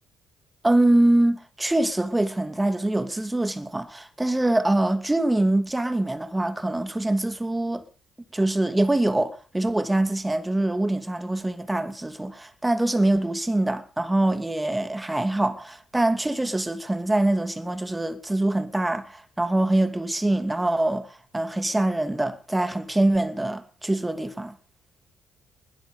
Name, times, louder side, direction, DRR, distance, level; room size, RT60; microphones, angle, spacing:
voice 1, 0.6-7.8 8.3-24.5, right 1 dB, 15° right, 2.7 m, -24 dB
21.0 x 12.0 x 5.2 m
hypercardioid pair, 55°, 0 cm